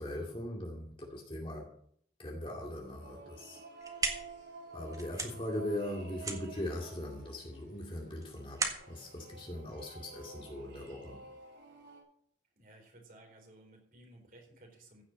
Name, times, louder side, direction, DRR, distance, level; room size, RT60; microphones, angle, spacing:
voice 1, 0.0-1.7 2.2-3.6 4.0-4.1 4.7-11.2, left 1 dB, 30° left, -1 dB, 2.4 m, -40 dB
sound 1, 2.6-12.0, right 3 dB, 90° right, 3.9 m, -52 dB
sound 2, 3.6-10.4, right 4 dB, 20° right, 1.6 m, -40 dB
voice 2, 12.6-15.0, right 1 dB, 50° right, 1 dB, 4.4 m, -57 dB
15.5 x 6.5 x 7.3 m, 0.64 s
head